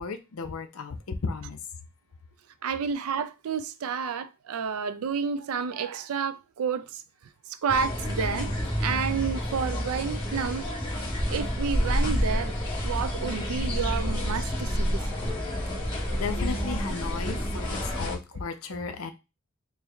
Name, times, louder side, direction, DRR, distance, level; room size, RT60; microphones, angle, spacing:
voice 1, 0.0-1.6 16.1-19.1, left 4 dB, 75° left, 0.6 m, -34 dB
voice 2, 2.6-7.0 7.5-10.7 11.3-12.6 12.8-15.0 16.0-16.1, right 6 dB, 80° right, 0.4 m, -30 dB
sound 1, 7.7-18.1, equal, 25° left, 1.5 m, -29 dB
4.5 x 2.1 x 3.4 m
head